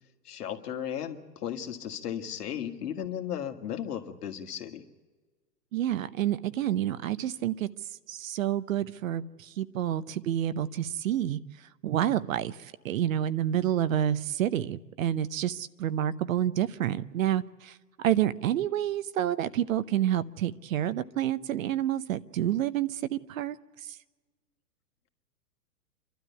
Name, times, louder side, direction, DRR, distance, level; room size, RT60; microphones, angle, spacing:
voice 1, 0.2-4.8, left 9 dB, 65° left, 4 dB, 2.1 m, -35 dB
voice 2, 5.7-7.7 8.1-23.6 23.9-24.0, right 11 dB, 55° right, 15 dB, 0.8 m, -29 dB
28.0 x 12.5 x 8.2 m, 1.4 s
hypercardioid pair, 120°, 49 cm